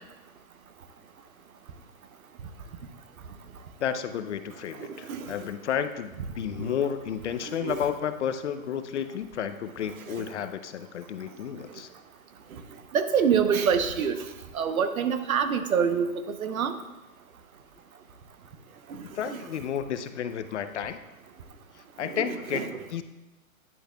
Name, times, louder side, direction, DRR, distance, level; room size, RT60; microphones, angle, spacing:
voice 1, 3.8-11.9 19.1-21.0 22.0-23.0, left 8 dB, 55° left, 10 dB, 0.5 m, -32 dB
voice 2, 4.8-5.3 6.6-6.7 7.5-7.8 10.1-10.3 12.9-14.2 14.5-16.8 18.9-19.4 22.0-22.2 22.5-22.7, right 7 dB, 80° right, 9 dB, 0.9 m, -26 dB
10.0 x 6.4 x 2.3 m, 1.0 s
hypercardioid pair, 170°, 42 cm